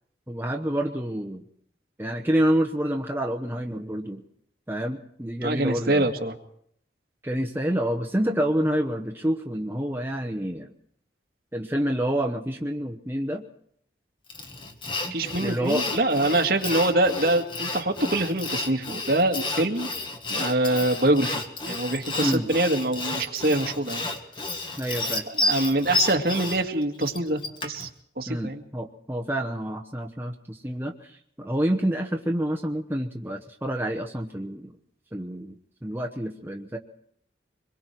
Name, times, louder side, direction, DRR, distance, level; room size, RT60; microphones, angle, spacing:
voice 1, 0.3-1.4 2.0-4.2 4.7-6.1 7.2-10.7 11.5-13.4 15.4-15.9 22.2-22.5 24.8-25.2 28.3-34.7 35.1-36.8, equal, 10° right, 2 dB, 1.0 m, -28 dB
voice 2, 5.4-6.3 15.1-19.9 20.3-24.0 25.3-27.9 28.2-28.6, right 1 dB, 55° right, 4 dB, 2.0 m, -24 dB
Sawing, 14.3-27.9, left 2 dB, 25° left, 1.7 m, -31 dB
25.5 x 22.0 x 4.6 m, 0.68 s
head